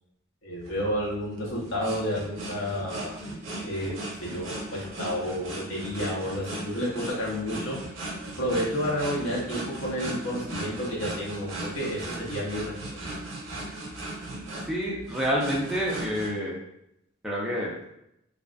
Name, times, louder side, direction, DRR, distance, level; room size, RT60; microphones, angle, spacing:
voice 1, 0.4-3.2 3.6-7.7 8.4-12.7, equal, 75° left, -5 dB, 0.7 m, -31 dB
sound 1, 0.6-16.3, right 1 dB, 65° right, 0.6 m, -37 dB
voice 2, 14.7-16.5 17.2-17.8, equal, ahead, -5 dB, 0.4 m, -28 dB
2.3 x 2.3 x 2.2 m, 0.79 s
head